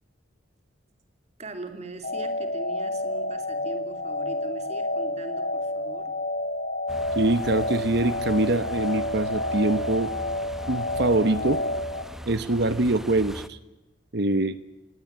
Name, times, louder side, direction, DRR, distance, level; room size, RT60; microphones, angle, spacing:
voice 1, 1.4-6.1, right 1 dB, 35° right, 9 dB, 2.8 m, -41 dB
sound 1, 2.0-12.0, left 1 dB, 45° left, 1.6 m, -29 dB
sound 2, 6.9-13.5, equal, ahead, 0.8 m, -40 dB
voice 2, 7.1-10.1 10.7-11.6 12.3-13.6 14.1-14.6, right 2 dB, 55° right, 14 dB, 1.1 m, -24 dB
20.0 x 18.5 x 9.8 m, 1.0 s
head